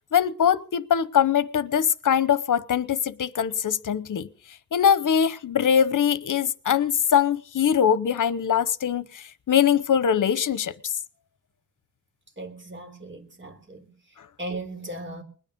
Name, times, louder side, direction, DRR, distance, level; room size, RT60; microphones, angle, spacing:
voice 1, 0.1-4.3 4.7-10.9, left 8 dB, 65° left, 0.9 m, -22 dB
voice 2, 12.4-13.9 14.4-15.2, right 2 dB, 35° right, 3.5 m, -37 dB
21.0 x 9.7 x 5.3 m
wide cardioid pair, 90°, 33 cm